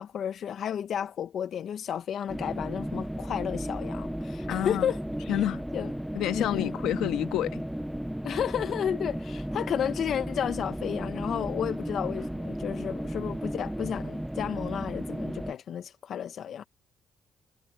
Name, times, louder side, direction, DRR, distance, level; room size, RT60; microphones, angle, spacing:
voice 1, 0.0-5.5 5.7-5.9 6.3-6.8 8.2-16.7, left 9 dB, 65° left, 0.8 m, -32 dB
sound 1, 2.3-15.5, equal, 5° right, 0.6 m, -34 dB
voice 2, 4.5-4.9 5.3-5.6 6.1-7.6, left 12 dB, 85° left, 1.3 m, -29 dB
cardioid pair, 80°, 0 cm